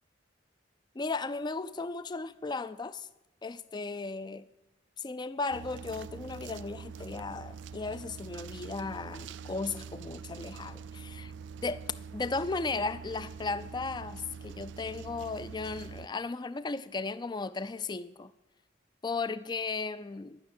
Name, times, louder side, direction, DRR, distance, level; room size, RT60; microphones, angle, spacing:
voice 1, 0.9-3.1 3.4-4.5 5.0-11.3 11.6-11.8 12.1-18.3 19.0-20.4, left 3 dB, 25° left, 0.4 m, -36 dB
sound 1, 5.5-16.1, right 6 dB, 65° right, 0.3 m, -45 dB
12.0 x 6.3 x 9.5 m
head